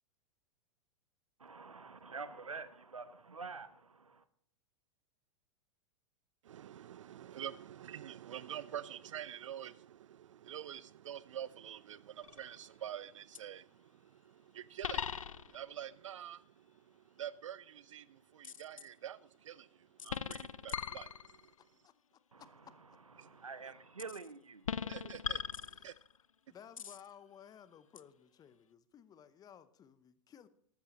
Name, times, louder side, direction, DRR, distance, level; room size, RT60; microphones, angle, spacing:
voice 1, 1.4-4.2 22.3-22.4 23.2-25.2, right 4 dB, 85° right, 0.9 m, -47 dB
voice 2, 6.4-21.5 23.2-23.3 24.9-25.9, right 10 dB, 65° right, 0.4 m, -47 dB
sound 1, 12.2-12.7 13.3-13.4 14.8-15.7 18.4-18.9 20.0-21.6 24.0-24.3 24.6-26.2 26.8-27.1 28.0-28.1, left 7 dB, 80° left, 0.5 m, -40 dB
voice 3, 22.4-23.0 25.6-26.1 26.5-30.5, left 9 dB, 20° left, 0.8 m, -57 dB
13.5 x 13.0 x 3.0 m
figure-of-eight pair, 95°, 17 cm